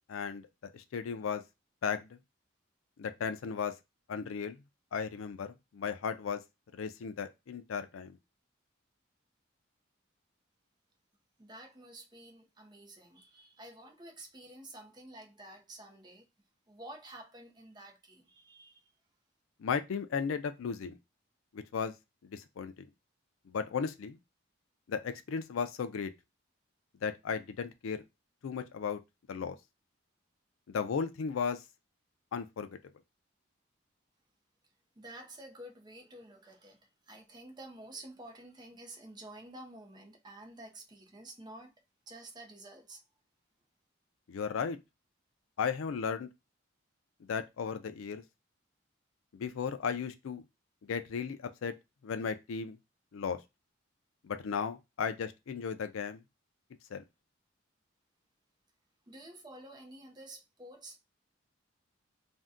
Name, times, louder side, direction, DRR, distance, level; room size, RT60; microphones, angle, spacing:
voice 1, 0.1-1.4 1.8-2.1 3.0-3.7 4.1-4.6 4.9-6.4 6.7-8.2 19.6-21.0 21.5-21.9 22.2-22.9 23.5-24.2 24.9-26.1 27.0-28.0 28.4-29.0 29.3-29.6 30.7-31.6 32.3-32.8 44.3-44.8 45.6-46.3 47.3-48.2 49.3-50.4 50.8-51.7 52.0-52.8 53.1-53.4 54.2-56.2 56.9-57.0, left 6 dB, 80° left, 0.4 m, -35 dB
voice 2, 11.4-16.3 16.7-18.9 35.0-36.8 37.1-41.7 42.1-43.0 59.1-61.0, right 1 dB, 20° right, 0.5 m, -50 dB
2.6 x 2.1 x 3.5 m
head